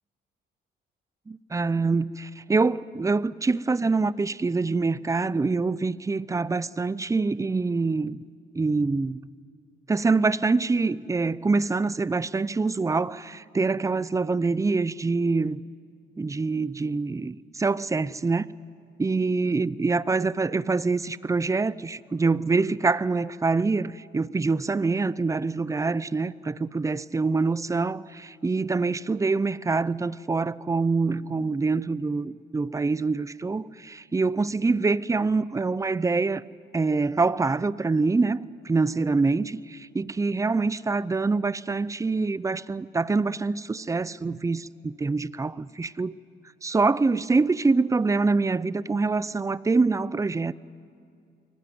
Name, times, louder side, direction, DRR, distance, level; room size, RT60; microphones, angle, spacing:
voice 1, 1.3-8.2 8.5-9.3 9.9-15.6 16.2-18.5 19.0-36.4 36.7-46.1 46.6-50.5, right 3 dB, 15° right, 0.5 m, -25 dB
23.5 x 18.0 x 9.5 m
cardioid pair, 90°, 20 cm